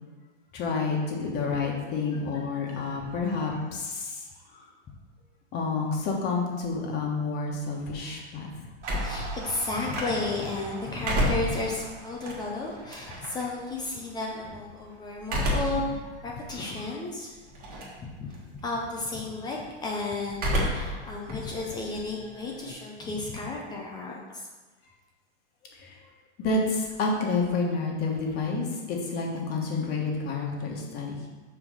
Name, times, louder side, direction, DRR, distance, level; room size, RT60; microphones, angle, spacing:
voice 1, 0.5-4.3 4.5-4.7 5.5-8.5 16.9-17.0 25.8-26.0 26.4-31.1, left 3 dB, 30° left, 0 dB, 1.4 m, -29 dB
voice 2, 2.5-2.9 9.0-17.4 18.0-24.4, left 3 dB, 10° left, -2 dB, 0.6 m, -33 dB
sound 1, 8.8-10.4 10.8-13.4 15.2-15.9 16.4-16.5 17.6-18.0 18.3-18.8 20.3-21.0 21.3-22.7, equal, 25° right, 1.6 m, -30 dB
sound 2, 8.8-15.3, right 3 dB, 85° right, 1.8 m, -45 dB
5.7 x 4.6 x 6.4 m, 1.3 s
hypercardioid pair, 150°, 35 cm